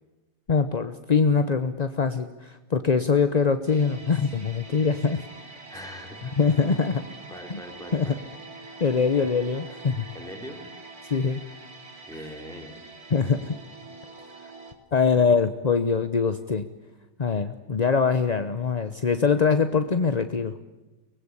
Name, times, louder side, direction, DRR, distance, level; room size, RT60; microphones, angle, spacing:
voice 1, 0.5-5.2 6.4-7.0 7.5-7.6 7.9-8.1 8.8-10.1 11.1-11.4 13.1-13.6 14.9-16.6 17.2-20.6, left 5 dB, 35° left, 10 dB, 0.7 m, -23 dB
sound 1, 3.7-14.7, right 3 dB, 55° right, 3.2 m, -45 dB
voice 2, 5.7-6.6 7.3-8.2 10.1-10.7 12.0-12.9, equal, ahead, 2 dB, 4.2 m, -42 dB
24.0 x 20.0 x 9.8 m, 1.1 s
omnidirectional pair, 1.8 m